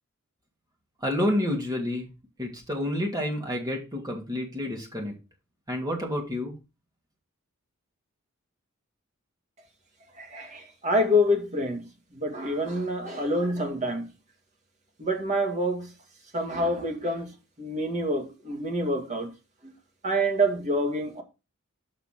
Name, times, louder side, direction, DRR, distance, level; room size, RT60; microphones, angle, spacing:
voice 1, 1.0-2.1 2.4-5.1 5.7-6.5, left 1 dB, 20° right, 2.6 m, -29 dB
voice 2, 10.2-14.1 15.0-15.9 16.3-17.3 17.6-19.3 20.0-21.2, equal, 35° right, 2.2 m, -27 dB
7.0 x 5.8 x 5.8 m
head